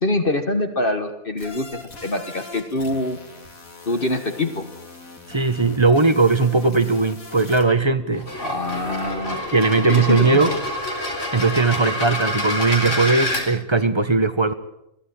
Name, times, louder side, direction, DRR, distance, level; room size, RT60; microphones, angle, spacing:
voice 1, 0.0-3.2 3.9-4.6 8.4-9.4 9.9-10.6, left 2 dB, 40° left, 8 dB, 1.7 m, -24 dB
sound 1, 1.4-7.6, left 3 dB, 75° left, 3.1 m, -41 dB
voice 2, 5.3-8.3 9.5-10.5 11.3-14.5, right 3 dB, 20° right, 10 dB, 1.2 m, -18 dB
sound 2, 8.1-13.4, left 1 dB, 60° left, 4.5 m, -27 dB
22.0 x 15.0 x 8.9 m, 0.81 s
omnidirectional pair, 1.4 m